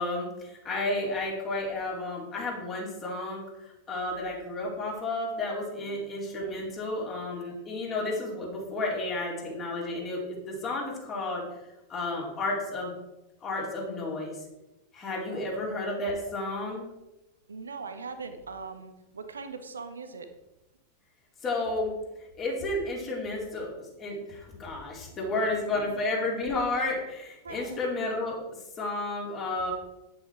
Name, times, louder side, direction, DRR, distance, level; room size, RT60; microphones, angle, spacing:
voice 1, 0.0-11.4 11.9-12.9 13.4-14.4 14.9-16.9 21.4-21.9 22.4-28.4 28.8-29.7, left 2 dB, 30° left, -3 dB, 4.1 m, -32 dB
voice 2, 17.5-20.3 25.5-25.6 25.8-26.0 27.4-27.8, right 4 dB, 70° right, 8 dB, 1.2 m, -41 dB
10.0 x 8.7 x 4.6 m, 0.97 s
figure-of-eight pair, 90°, 0 cm